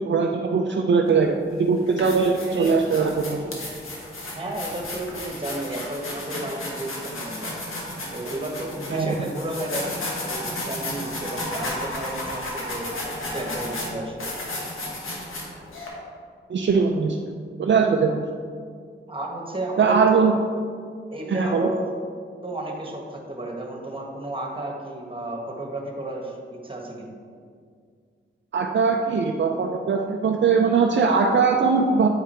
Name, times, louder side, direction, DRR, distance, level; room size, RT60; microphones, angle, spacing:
voice 1, 0.0-3.4 8.9-9.3 16.5-17.2 17.6-18.2 19.8-20.3 21.3-21.7 28.5-32.1, right 5 dB, 60° right, 2 dB, 0.5 m, -21 dB
sound 1, 1.1-1.2 1.8-15.9, left 1 dB, 80° left, 1.5 m, -33 dB
voice 2, 4.3-7.6 8.1-14.3 19.1-20.3 21.1-21.9 22.4-27.1, right 1 dB, 25° right, 0 dB, 1.5 m, -32 dB
8.1 x 5.0 x 4.3 m, 2.1 s
cardioid pair, 60°, 21 cm